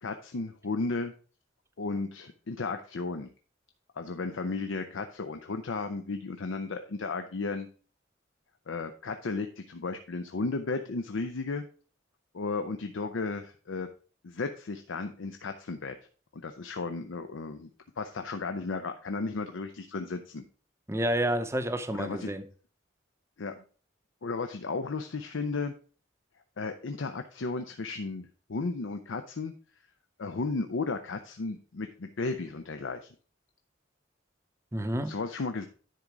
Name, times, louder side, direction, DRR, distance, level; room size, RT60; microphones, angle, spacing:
voice 1, 0.0-1.1 1.8-3.3 4.0-7.7 8.7-11.6 12.3-13.9 14.2-16.0 16.3-17.7 18.0-20.4 21.9-22.3 23.4-23.5 24.2-25.7 26.6-29.5 30.2-33.1 35.0-35.7, left 3 dB, 90° left, 7 dB, 0.6 m, -34 dB
voice 2, 20.9-22.4 34.7-35.1, right 1 dB, 15° right, 10 dB, 0.6 m, -29 dB
10.5 x 3.9 x 4.7 m, 0.39 s
head